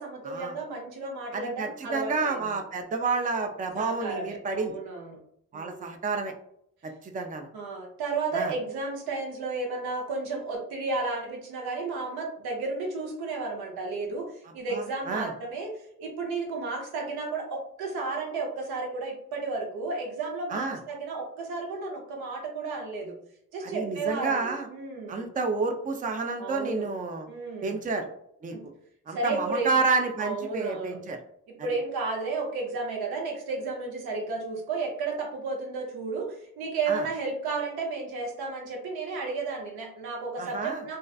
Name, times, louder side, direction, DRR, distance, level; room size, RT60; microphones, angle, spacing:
voice 1, 0.0-2.6 3.8-5.2 5.5-5.9 7.5-15.7 16.0-23.1 23.5-25.3 26.4-26.9 27.3-27.8 28.5-28.7 29.1-29.8 30.2-31.0 31.6-41.0, right 3 dB, 85° right, 0 dB, 0.7 m, -33 dB
voice 2, 1.3-4.8 5.5-6.3 6.8-7.5 8.3-8.5 14.7-15.3 20.5-20.8 23.6-24.7 25.1-27.3 27.6-28.1 28.4-28.5 29.1-31.2 36.9-37.1 40.4-40.8, right 4 dB, 25° right, 5 dB, 0.4 m, -30 dB
2.4 x 2.3 x 2.3 m, 0.71 s
supercardioid pair, 45°, 37 cm